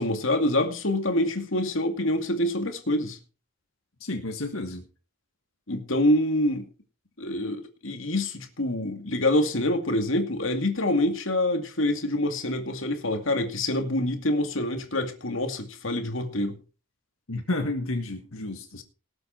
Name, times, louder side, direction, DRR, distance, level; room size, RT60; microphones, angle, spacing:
voice 1, 0.0-3.2 5.7-6.7 7.2-16.6 18.7-18.8, left 1 dB, 70° left, 2.4 m, -26 dB
voice 2, 4.0-4.9 17.3-18.8, left 2 dB, 85° left, 1.8 m, -31 dB
18.5 x 8.0 x 4.5 m
head